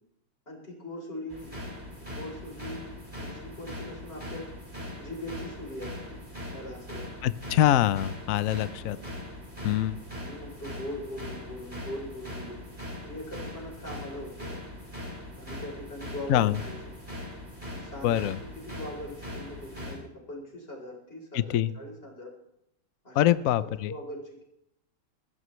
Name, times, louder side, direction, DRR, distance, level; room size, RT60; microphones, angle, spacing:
voice 1, 0.5-4.5 5.0-6.2 6.5-7.1 8.8-9.1 10.2-12.7 13.0-14.6 15.4-16.7 17.7-22.3 23.0-23.3 23.6-24.4, left 1 dB, 25° left, 0 dB, 4.1 m, -41 dB
sound 1, 1.3-19.9, left 1 dB, 20° right, 5.8 m, -41 dB
voice 2, 7.2-9.0 9.6-10.0 16.3-16.6 18.0-18.4 21.3-21.7 23.1-23.9, left 12 dB, 85° left, 15 dB, 0.7 m, -24 dB
21.5 x 14.5 x 3.2 m, 0.77 s
omnidirectional pair, 2.2 m